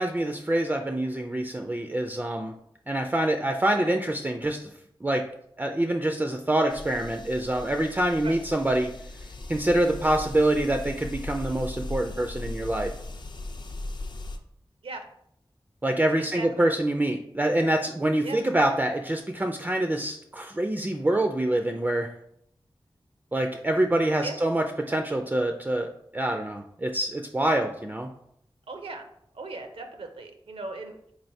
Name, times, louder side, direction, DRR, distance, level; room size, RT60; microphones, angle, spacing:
voice 1, 0.0-2.5 2.9-4.7 5.0-5.3 5.6-8.9 9.5-12.9 15.8-22.1 23.3-28.1, right 1 dB, 20° right, 4 dB, 0.3 m, -26 dB
sound 1, 6.7-14.4, left 2 dB, 55° left, 0.5 m, -38 dB
voice 2, 16.3-16.7 18.2-18.4 24.2-24.4 28.7-29.0 29.3-30.9, right 3 dB, 80° right, 5 dB, 0.5 m, -37 dB
4.0 x 3.2 x 2.7 m, 0.72 s
wide cardioid pair, 50°, 9 cm